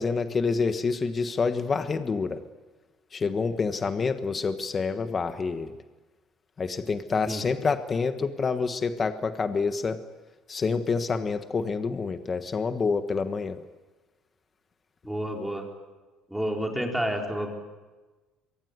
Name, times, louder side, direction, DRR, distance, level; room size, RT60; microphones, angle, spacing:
voice 1, 0.0-2.4 3.1-5.7 6.6-10.0 10.5-13.6, left 4 dB, 30° left, 8 dB, 1.3 m, -27 dB
voice 2, 15.0-15.6 16.3-17.5, equal, 5° right, 1 dB, 4.3 m, -29 dB
24.0 x 23.5 x 9.5 m, 1.2 s
cardioid pair, 125°, 0 cm